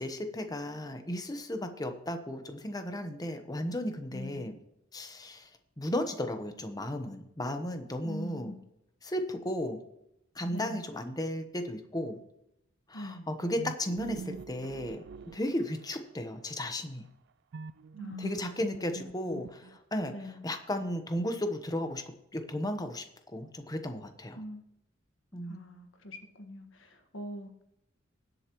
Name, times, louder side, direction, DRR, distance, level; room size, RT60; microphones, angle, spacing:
voice 1, 0.0-4.6 4.9-5.5 5.8-8.5 9.0-9.8 10.3-12.2 12.9-15.0 15.3-17.1 18.2-20.1 20.4-22.0 22.3-24.4 25.3-25.6, left 1 dB, 20° left, 7 dB, 1.0 m, -35 dB
voice 2, 4.1-4.6 8.0-8.6 10.5-10.9 12.9-13.3 18.0-19.2 20.1-20.5 24.3-24.6 25.4-27.6, left 1 dB, 70° left, 6 dB, 1.6 m, -44 dB
sound 1, 13.6-16.1 17.5-20.0, right 5 dB, 55° right, 0.4 m, -43 dB
19.5 x 7.9 x 3.1 m, 0.83 s
head